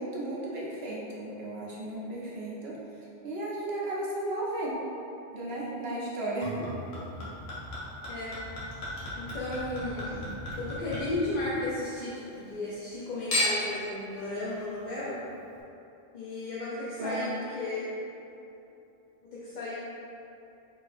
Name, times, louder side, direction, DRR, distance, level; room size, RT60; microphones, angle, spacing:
voice 1, 0.0-4.7 5.3-6.6 17.0-17.3, right 1 dB, 75° right, -5 dB, 1.1 m, -34 dB
Chink clink / Liquid, 6.4-11.9 12.3-12.9 13.3-13.8 14.6-14.7, left 1 dB, 75° left, 1.3 m, -35 dB
voice 2, 9.2-10.3 10.6-15.2 16.1-17.9 19.3-19.7, left 2 dB, 50° left, -9 dB, 0.8 m, -34 dB
4.4 x 4.2 x 2.6 m, 2.9 s
omnidirectional pair, 1.1 m